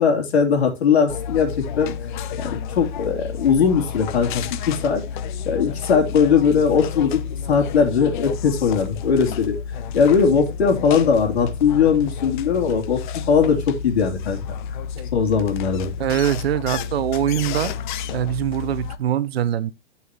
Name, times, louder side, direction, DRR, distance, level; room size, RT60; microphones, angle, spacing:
voice 1, 0.0-1.9 2.3-5.0 5.4-9.6 9.9-14.4 15.1-15.9, left 6 dB, 65° left, 3.4 m, -19 dB
sound 1, 1.1-19.0, left 7 dB, 45° left, 0.9 m, -30 dB
voice 2, 16.0-17.7 18.1-19.7, right 11 dB, 60° right, 0.8 m, -23 dB
12.5 x 5.7 x 3.0 m
hypercardioid pair, 125°, 35 cm